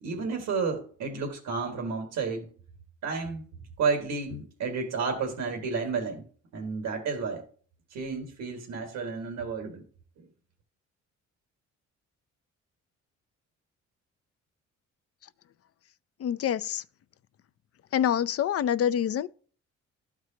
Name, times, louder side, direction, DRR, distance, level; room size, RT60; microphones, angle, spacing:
voice 1, 0.0-2.5 3.0-3.4 3.8-6.2 6.5-7.4 7.9-9.8, right 5 dB, 85° right, 1.8 m, -31 dB
voice 2, 16.2-16.8 17.9-19.3, left 9 dB, 50° left, 0.5 m, -26 dB
12.5 x 4.7 x 2.8 m
cardioid pair, 90°, 30 cm